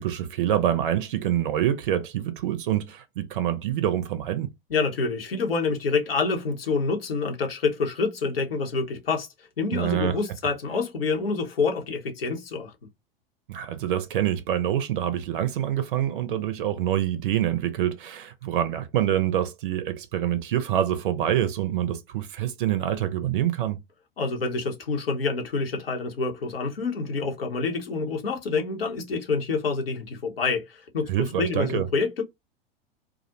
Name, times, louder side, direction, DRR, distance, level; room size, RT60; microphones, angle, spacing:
voice 1, 0.0-4.5 9.7-10.1 13.5-23.8 31.1-31.9, right 11 dB, 60° right, 0.5 m, -26 dB
voice 2, 4.7-9.3 9.6-12.7 24.2-32.2, left 4 dB, 75° left, 0.8 m, -27 dB
2.3 x 2.1 x 2.7 m
figure-of-eight pair, 90°, 30 cm